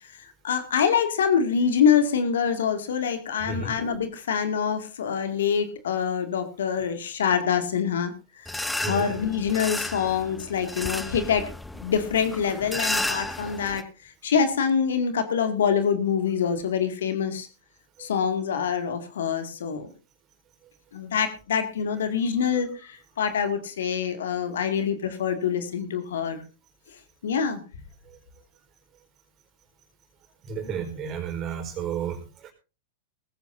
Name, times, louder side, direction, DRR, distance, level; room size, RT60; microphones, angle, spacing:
voice 1, 0.1-8.1 8.4-8.5 8.8-11.5 11.8-17.5 18.0-19.9 20.9-26.4 27.2-27.6, left 7 dB, 75° left, 8 dB, 2.3 m, -25 dB
voice 2, 3.4-3.7 8.8-9.1 30.4-32.5, right 6 dB, 35° right, 5 dB, 4.5 m, -32 dB
sound 1, 8.5-13.8, left 1 dB, 5° left, 0.8 m, -32 dB
19.0 x 15.0 x 2.7 m, 0.31 s
hypercardioid pair, 105°, 0 cm